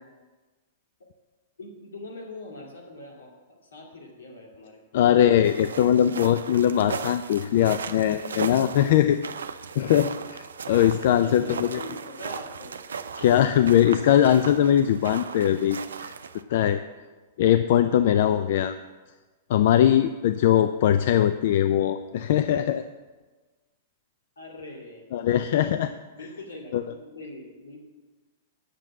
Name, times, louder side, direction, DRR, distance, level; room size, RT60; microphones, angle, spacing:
voice 1, 1.6-3.3 3.6-5.1 11.2-12.7 17.7-18.3 24.4-25.1 25.3-25.4 26.2-27.8, left 2 dB, 85° left, -1 dB, 2.4 m, -42 dB
voice 2, 4.9-9.2 9.8-11.8 13.2-16.1 16.5-16.8 17.4-18.8 19.5-22.8 25.1-25.9 26.7-26.8, left 10 dB, 60° left, 10 dB, 0.4 m, -21 dB
sound 1, 5.4-16.4, right 6 dB, 85° right, 0.5 m, -37 dB
7.6 x 6.7 x 7.4 m, 1.3 s
hypercardioid pair, 115°, 0 cm